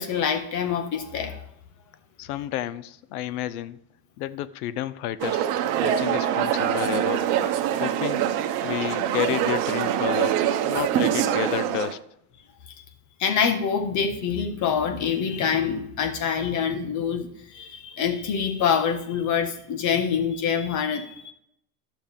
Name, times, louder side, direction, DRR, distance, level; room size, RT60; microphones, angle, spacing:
voice 1, 0.0-1.4 12.6-12.8 13.2-21.3, left 7 dB, 40° left, 7 dB, 1.4 m, -26 dB
voice 2, 2.2-3.8 4.2-5.5 5.8-7.3 7.8-8.2 8.6-10.4 10.6-12.0, left 12 dB, 75° left, 16 dB, 0.7 m, -30 dB
sound 1, 5.2-11.9, right 10 dB, 65° right, 1.1 m, -24 dB
12.0 x 6.8 x 3.6 m, 0.75 s
supercardioid pair, 120°, 46 cm